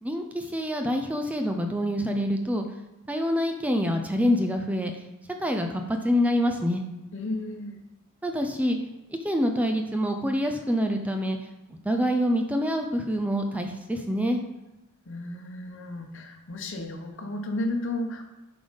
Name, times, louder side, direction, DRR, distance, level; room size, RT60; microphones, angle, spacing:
voice 1, 0.0-2.7 3.1-5.0 5.4-6.8 8.2-8.8 9.2-11.4 11.7-14.4, equal, 5° right, 4 dB, 0.5 m, -26 dB
voice 2, 7.1-7.8 15.1-18.2, left 1 dB, 60° left, 5 dB, 1.0 m, -33 dB
9.0 x 3.9 x 5.2 m, 0.98 s
head